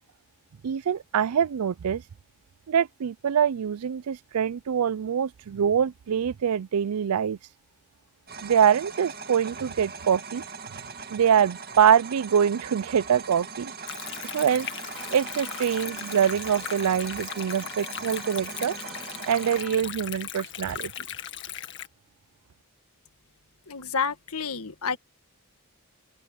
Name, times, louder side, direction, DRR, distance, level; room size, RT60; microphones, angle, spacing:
voice 1, 0.6-2.0 2.7-7.4 8.4-10.4 11.1-13.7 14.3-14.7 15.1-18.7 19.3-20.9, right 8 dB, 90° right, 0.4 m, -24 dB
sound 1, 8.3-19.6, right 5 dB, 45° right, 2.1 m, -40 dB
Stream, 13.9-21.9, left 10 dB, 55° left, 1.9 m, -38 dB
Organ, 14.0-19.8, equal, ahead, 4.4 m, -49 dB
voice 2, 23.7-25.0, left 5 dB, 80° left, 1.6 m, -29 dB
open air
head